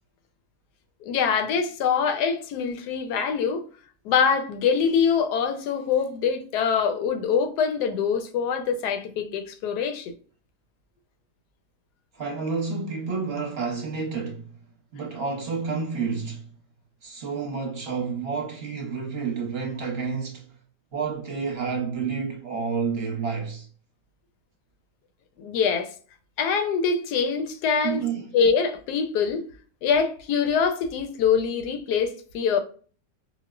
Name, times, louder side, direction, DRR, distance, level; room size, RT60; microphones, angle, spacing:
voice 1, 1.1-3.6 4.0-10.1 25.4-25.9 26.4-28.0 28.3-29.5 29.8-32.6, left 6 dB, 90° left, 1.2 m, -24 dB
voice 2, 12.1-14.5 14.9-16.5 17.0-20.5 20.9-23.7 27.8-28.4, right 5 dB, 45° right, 0.9 m, -29 dB
4.4 x 2.1 x 2.3 m
omnidirectional pair, 1.7 m